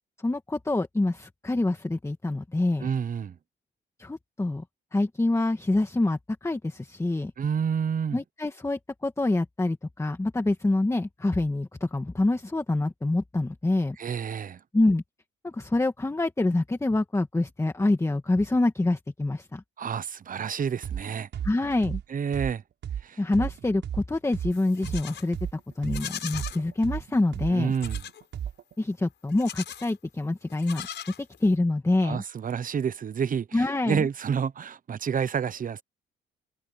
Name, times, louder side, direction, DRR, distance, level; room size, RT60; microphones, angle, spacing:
voice 1, 0.2-2.9 4.0-4.6 4.9-7.3 8.1-14.0 14.7-15.0 15.4-19.6 21.4-22.0 23.2-27.7 28.8-30.9 31.2-32.2 33.5-34.1, left 2 dB, 15° left, 2.0 m, -26 dB
voice 2, 2.8-3.4 7.4-8.2 14.0-14.6 19.8-21.3 22.1-22.6 23.0-23.2 27.5-28.0 32.0-35.8, right 7 dB, 45° right, 1.0 m, -29 dB
sound 1, 20.8-21.0 21.3-25.0 25.3-28.8, right 9 dB, 65° right, 6.2 m, -34 dB
Livestock farm animals working animals, 24.5-25.3 25.8-26.6 27.7-28.2 29.3-29.9 30.5-31.6, left 9 dB, 60° left, 5.7 m, -39 dB
cardioid pair, 90°, 20 cm